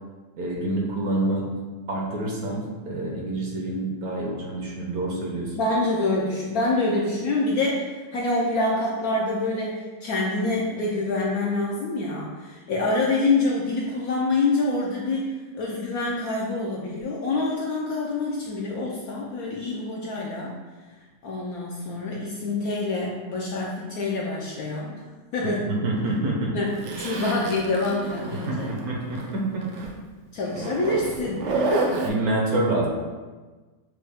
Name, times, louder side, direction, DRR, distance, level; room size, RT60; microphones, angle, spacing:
voice 1, 0.4-1.5 1.9-5.6 25.7-26.5 28.5-29.6 32.0-32.9, right 2 dB, 65° right, -2 dB, 1.1 m, -27 dB
voice 2, 5.5-20.6 21.2-25.0 25.3-25.8 26.5-28.8 30.3-31.5, left 2 dB, 70° left, -3 dB, 0.9 m, -26 dB
Zipper (clothing), 26.8-29.3 29.6-29.9 30.5-32.1, right 2 dB, 85° right, 0.6 m, -29 dB
6.4 x 2.3 x 3.4 m, 1.3 s
omnidirectional pair, 2.0 m